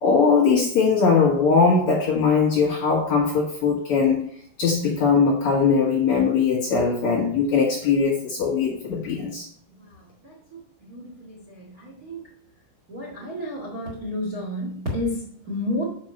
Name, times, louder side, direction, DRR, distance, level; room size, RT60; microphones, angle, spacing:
voice 1, 0.0-4.3 4.6-9.5, left 5 dB, 65° left, -4 dB, 1.9 m, -20 dB
voice 2, 10.9-12.2 12.9-15.8, left 1 dB, 65° right, -2 dB, 0.8 m, -31 dB
7.3 x 5.7 x 6.5 m, 0.63 s
omnidirectional pair, 5.5 m